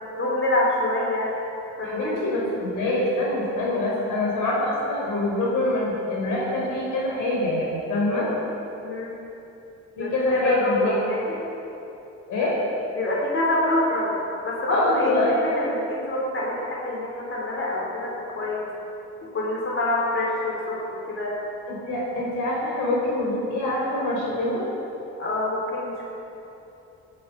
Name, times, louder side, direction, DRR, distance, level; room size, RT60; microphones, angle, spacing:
voice 1, 0.2-1.3 1.8-2.3 8.8-9.2 10.0-11.3 13.0-18.7 19.2-21.4 25.2-26.0, left 1 dB, 45° left, -3 dB, 4.2 m, -26 dB
voice 2, 1.8-8.3 10.0-10.9 12.3-12.5 14.7-15.4 21.7-24.6, left 1 dB, 90° left, -4 dB, 4.4 m, -25 dB
16.5 x 11.0 x 6.1 m, 3.0 s
cardioid pair, 90°, 30 cm